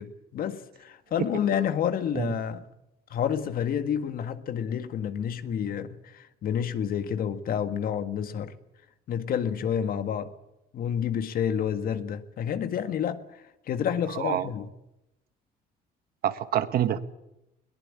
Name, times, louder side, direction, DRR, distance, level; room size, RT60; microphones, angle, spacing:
voice 1, 0.0-2.6 3.1-8.5 9.1-10.3 10.7-13.2 13.7-14.7, left 8 dB, 60° left, 1.8 m, -29 dB
voice 2, 14.1-14.5 16.2-17.0, right 11 dB, 65° right, 1.6 m, -26 dB
21.5 x 19.0 x 8.7 m
cardioid pair, 110°, 17 cm